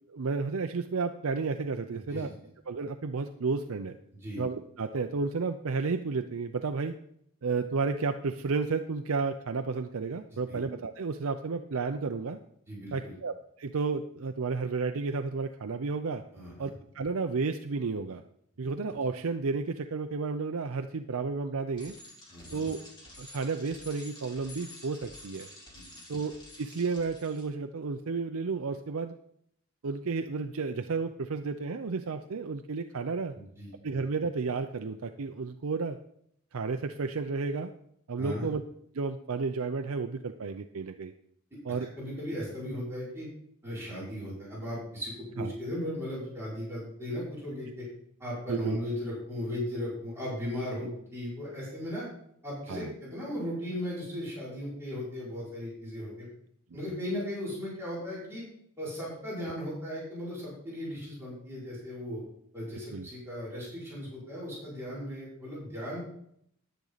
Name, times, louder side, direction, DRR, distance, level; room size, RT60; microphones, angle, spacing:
voice 1, 0.1-2.3 2.7-4.0 4.4-6.9 7.4-12.4 12.9-16.2 16.6-18.2 18.6-21.9 22.5-22.8 23.2-25.5 26.1-29.1 29.8-33.4 33.8-36.0 36.5-37.7 38.1-38.6 38.9-41.1 41.6-41.9 45.4-45.5 48.5-48.8 52.7-52.9 62.9-63.1, right 4 dB, 70° right, 7 dB, 0.6 m, -32 dB
voice 2, 12.7-13.1 16.3-16.7 22.3-22.7 25.7-25.8 33.3-33.7 38.2-38.5 42.0-43.3 43.6-47.9 48.2-52.0 52.4-56.3 56.7-58.4 58.8-62.2 62.5-66.1, left 1 dB, 10° right, -9 dB, 5.5 m, -37 dB
Bicycle, 21.8-27.4, left 1 dB, 20° left, 3.0 m, -49 dB
10.5 x 10.5 x 4.0 m, 0.70 s
head